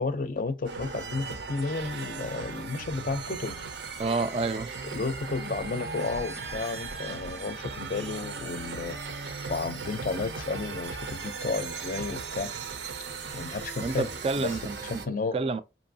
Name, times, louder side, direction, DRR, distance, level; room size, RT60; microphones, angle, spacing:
voice 1, 0.0-3.6 4.8-9.0 9.5-12.5 13.3-14.1 14.4-15.4, left 3 dB, 50° left, 0.4 m, -32 dB
sound 1, 0.6-15.1, right 4 dB, 75° right, 0.6 m, -37 dB
voice 2, 4.0-4.7 13.8-15.6, right 3 dB, 30° right, 0.3 m, -29 dB
5.2 x 2.7 x 2.7 m
head